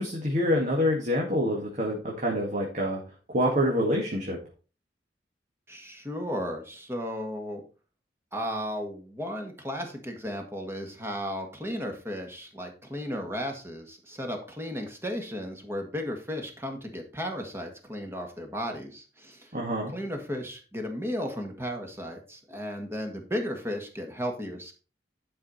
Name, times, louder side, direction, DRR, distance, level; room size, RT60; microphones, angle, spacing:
voice 1, 0.0-3.0 3.3-4.4 19.5-19.9, equal, 45° right, -2 dB, 1.9 m, -26 dB
voice 2, 5.7-7.6 8.3-19.5 19.9-24.7, equal, 15° right, 3 dB, 1.7 m, -34 dB
11.0 x 5.0 x 4.1 m, 0.35 s
head